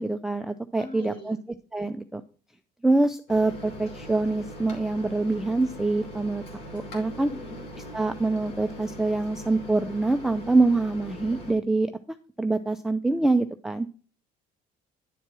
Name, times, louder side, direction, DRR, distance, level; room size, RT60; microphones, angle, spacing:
voice 1, 0.0-1.4 1.7-2.2 2.8-6.4 6.7-7.3 7.9-11.9 12.4-13.9, right 2 dB, ahead, 7 dB, 0.4 m, -25 dB
voice 2, 0.7-1.4 7.2-7.6, left 1 dB, 35° left, 1 dB, 2.5 m, -41 dB
Microwave oven, 3.3-11.5, equal, 85° left, 2.5 m, -41 dB
10.0 x 4.5 x 4.7 m, 0.38 s
cardioid pair, 110°, 17 cm